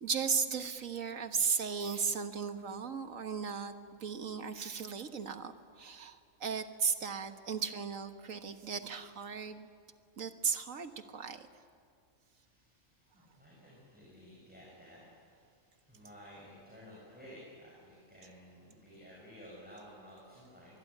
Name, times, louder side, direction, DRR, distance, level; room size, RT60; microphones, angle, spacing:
voice 1, 0.0-3.7 4.0-9.7 10.2-11.5, right 6 dB, 75° right, 8 dB, 1.8 m, -36 dB
voice 2, 12.2-20.8, equal, 5° right, -6 dB, 7.2 m, -54 dB
25.0 x 21.5 x 10.0 m, 2.3 s
omnidirectional pair, 1.4 m